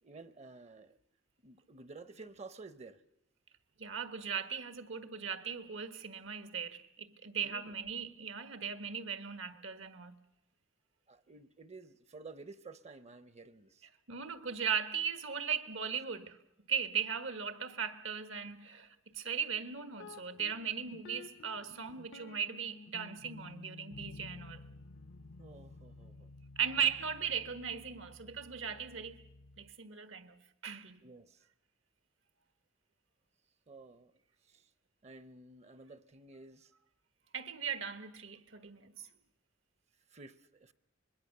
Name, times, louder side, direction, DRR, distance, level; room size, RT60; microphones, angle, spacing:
voice 1, 0.0-1.0 1.4-3.0 7.4-7.7 11.1-13.9 25.4-26.3 31.0-31.4 33.7-34.1 34.4-34.7 35.0-36.7 40.1-40.7, right 3 dB, 35° right, 0.7 m, -52 dB
voice 2, 3.8-10.2 14.1-16.4 16.7-24.7 26.6-29.2 29.6-30.3 30.6-31.0 37.3-39.1, right 7 dB, 75° right, 1.4 m, -38 dB
sound 1, 20.0-29.7, left 3 dB, 70° left, 0.7 m, -53 dB
25.5 x 21.0 x 6.7 m
head